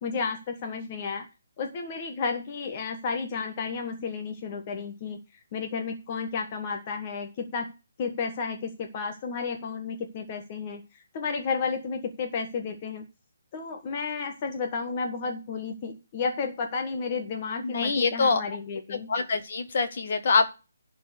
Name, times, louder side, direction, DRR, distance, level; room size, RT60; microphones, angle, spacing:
voice 1, 0.0-1.3 1.6-5.2 5.5-7.7 8.0-13.0 13.5-19.1, left 5 dB, 25° left, 4 dB, 1.4 m, -32 dB
voice 2, 17.6-18.4 18.9-20.5, left 4 dB, 40° left, 8 dB, 1.7 m, -25 dB
11.5 x 4.6 x 7.8 m, 0.31 s
hypercardioid pair, 175°, 0 cm